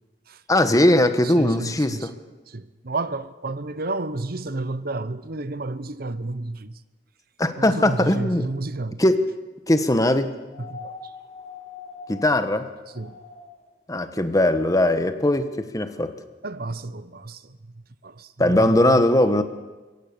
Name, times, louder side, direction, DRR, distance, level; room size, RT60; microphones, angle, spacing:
voice 1, 0.5-2.1 7.4-8.5 9.0-9.3 9.7-10.3 12.1-12.7 13.9-16.1 18.4-19.4, left 1 dB, 20° left, 1.2 m, -20 dB
voice 2, 1.4-2.1 2.5-6.8 7.6-9.0 10.7-11.0 12.9-13.2 16.4-17.4 18.0-19.0, right 2 dB, 55° right, 0.9 m, -31 dB
sound 1, 10.5-13.7 15.1-15.2, left 5 dB, 40° left, 2.1 m, -42 dB
23.0 x 16.5 x 6.9 m
head